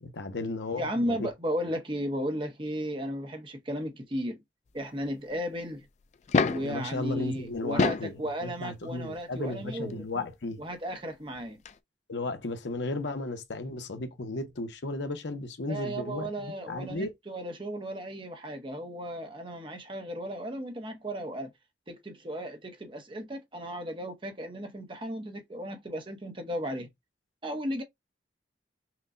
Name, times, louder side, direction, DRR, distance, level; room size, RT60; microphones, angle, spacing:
voice 1, 0.0-1.3 6.6-10.6 12.1-17.1, left 2 dB, 80° left, 0.8 m, -35 dB
voice 2, 0.8-4.4 4.7-5.9 6.5-10.0 10.6-11.6 15.7-21.5 21.9-26.9 27.4-27.8, equal, 30° right, 0.8 m, -35 dB
sound 1, 6.1-6.7 7.6-8.2 9.5-9.6 11.4-11.5 11.7-11.8, left 4 dB, 40° left, 0.3 m, -26 dB
5.8 x 2.2 x 2.5 m
head